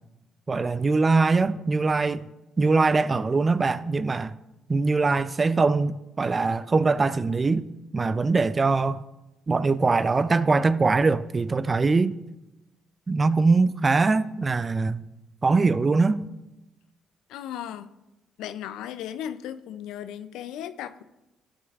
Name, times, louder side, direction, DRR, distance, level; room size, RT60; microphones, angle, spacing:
voice 1, 0.5-2.2 2.6-4.3 4.7-7.7 7.9-9.0 9.5-12.1 13.1-15.0 15.4-16.3, right 3 dB, 30° right, 0.3 m, -22 dB
voice 2, 17.3-17.9 18.4-21.0, left 10 dB, 85° left, 0.3 m, -36 dB
12.5 x 6.1 x 2.4 m
supercardioid pair, 70°, 0 cm